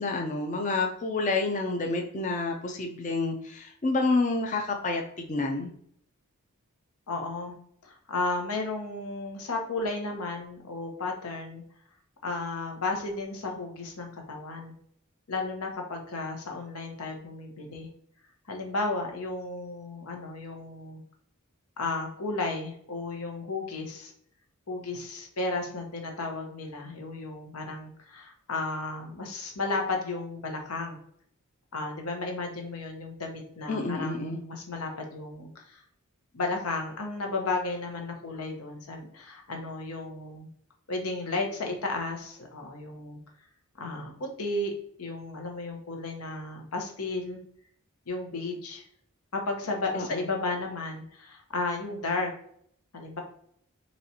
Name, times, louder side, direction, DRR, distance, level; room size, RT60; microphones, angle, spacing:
voice 1, 0.0-5.7 33.7-34.4 49.9-50.0, left 3 dB, 35° left, 2 dB, 0.4 m, -29 dB
voice 2, 7.1-7.5 7.8-11.6 12.2-14.7 15.3-17.9 18.5-21.0 21.8-24.1 24.7-31.0 31.7-35.8 36.3-40.5 40.9-43.2 43.8-44.7 45.0-47.4 48.1-48.9 49.3-52.3 52.9-53.2, left 3 dB, 90° left, 2 dB, 0.9 m, -33 dB
4.1 x 3.1 x 2.8 m, 0.64 s
head